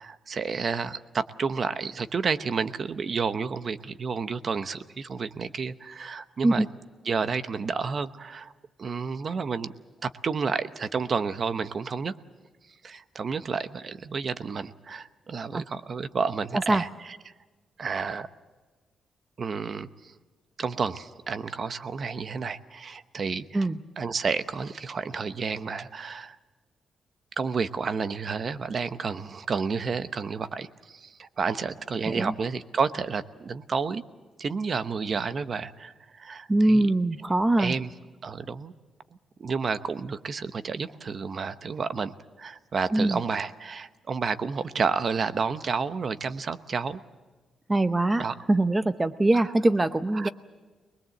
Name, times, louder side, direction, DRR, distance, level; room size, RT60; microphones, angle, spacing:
voice 1, 0.0-6.6 7.0-8.5 8.8-9.7 10.0-12.1 12.8-17.2 17.8-18.3 19.4-20.1 20.6-23.7 24.0-26.4 27.4-34.0 34.4-36.9 37.6-37.9 38.2-38.7 39.4-47.0 48.2-48.3 49.3-49.4 50.1-50.3, right 5 dB, 45° right, 12 dB, 0.9 m, -30 dB
voice 2, 36.5-37.7 42.9-43.2 47.7-48.2 48.5-50.3, right 2 dB, 15° right, 11 dB, 0.7 m, -22 dB
23.0 x 21.0 x 7.8 m, 1.3 s
cardioid pair, 125°, 0 cm